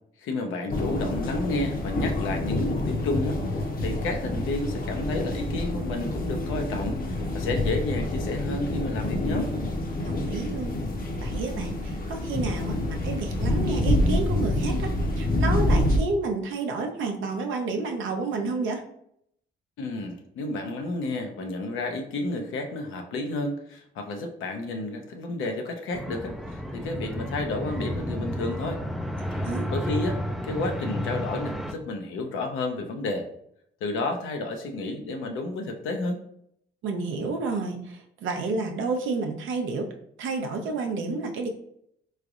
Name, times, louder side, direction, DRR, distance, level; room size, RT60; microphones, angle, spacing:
voice 1, 0.2-9.5 19.8-28.8 29.3-33.3 33.8-36.2, left 2 dB, 80° left, 4 dB, 0.6 m, -31 dB
sound 1, 0.7-16.0, left 1 dB, 45° left, 0.8 m, -27 dB
voice 2, 10.0-10.8 11.2-14.9 15.2-18.8 29.4-29.7 36.8-39.9 40.2-41.5, right 3 dB, 75° right, 3 dB, 0.7 m, -30 dB
sound 2, 25.9-31.7, equal, ahead, 0.3 m, -31 dB
3.8 x 3.2 x 2.4 m, 0.72 s
cardioid pair, 90°, 20 cm